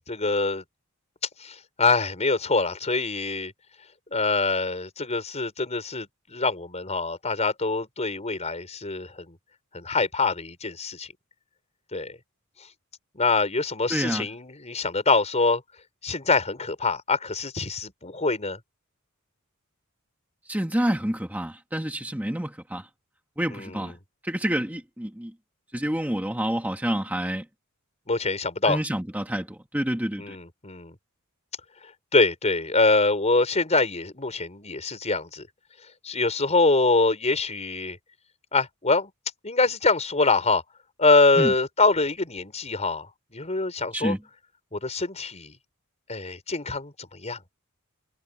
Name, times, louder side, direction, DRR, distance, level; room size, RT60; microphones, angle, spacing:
voice 1, 0.1-0.6 1.4-3.5 4.1-6.1 6.3-9.1 9.7-11.1 11.9-12.1 13.2-15.6 16.0-18.6 23.5-23.9 28.1-28.8 30.2-30.9 32.1-35.4 36.0-38.0 38.5-39.1 39.4-40.6 41.0-43.1 43.3-44.1 44.7-45.5 46.1-46.9 47.2-47.4, left 3 dB, 30° left, 5.0 m, -24 dB
voice 2, 13.9-14.3 20.5-22.9 23.4-23.9 24.2-25.3 25.7-27.4 28.7-30.4 41.4-41.5 43.9-44.2, right 1 dB, 10° right, 1.7 m, -28 dB
head